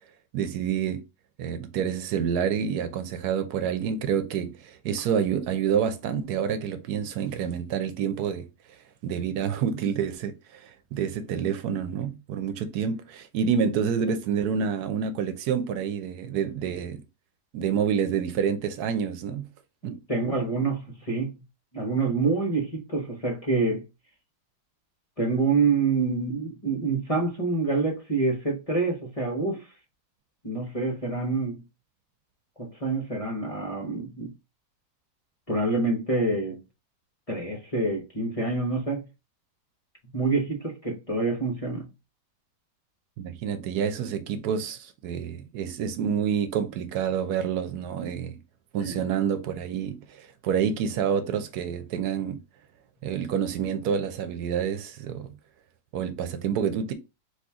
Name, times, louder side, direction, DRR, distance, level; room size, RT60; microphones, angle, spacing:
voice 1, 0.3-1.0 1.4-8.5 9.0-17.0 17.5-19.5 19.8-20.0 43.2-48.4 48.7-52.4 53.0-55.4 55.9-56.9, right 7 dB, 80° right, 1.2 m, -28 dB
voice 2, 19.8-21.3 21.7-23.8 25.2-29.6 30.4-31.6 32.6-34.3 35.5-36.6 37.3-39.1 40.1-41.9 48.8-49.0, right 3 dB, 25° left, 1.2 m, -27 dB
4.3 x 2.9 x 3.5 m
omnidirectional pair, 1.7 m